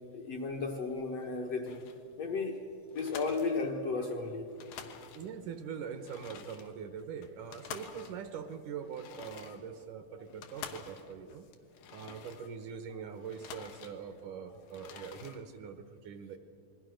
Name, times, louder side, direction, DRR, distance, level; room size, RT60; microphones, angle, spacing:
voice 1, 0.1-1.8 2.2-2.7 2.9-4.5, left 4 dB, 60° left, 1 dB, 1.9 m, -34 dB
sound 1, 1.7-2.1 2.5-2.6 2.9-4.2 4.4-5.5 5.9-12.8 13.1-14.3 14.6-15.4, left 8 dB, 80° left, 3.2 m, -49 dB
voice 2, 5.1-11.5 11.9-16.4, right 7 dB, 70° right, 9 dB, 2.3 m, -43 dB
28.0 x 21.5 x 6.4 m, 2.6 s
omnidirectional pair, 4.2 m